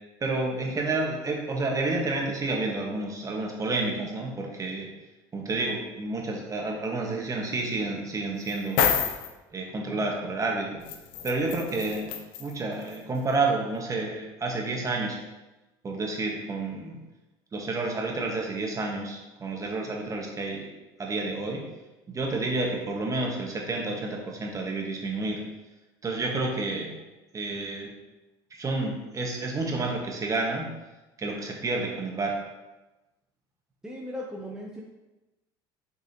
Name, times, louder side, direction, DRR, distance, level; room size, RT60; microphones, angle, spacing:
voice 1, 0.2-4.9 5.3-9.0 9.5-10.8 11.2-12.1 12.4-15.2 15.8-17.0 17.5-20.7 21.0-21.6 22.1-25.4 26.0-26.9 27.3-27.9 28.5-30.7 31.2-32.4, right 3 dB, 30° right, 0 dB, 1.5 m, -30 dB
sound 1, 8.5-9.3 10.9-12.5 12.9-13.0, left 7 dB, 80° left, 0.7 m, -28 dB
voice 2, 33.8-34.8, left 1 dB, 5° right, -2 dB, 0.8 m, -37 dB
6.8 x 4.7 x 3.0 m, 1.1 s
supercardioid pair, 90°, 12 cm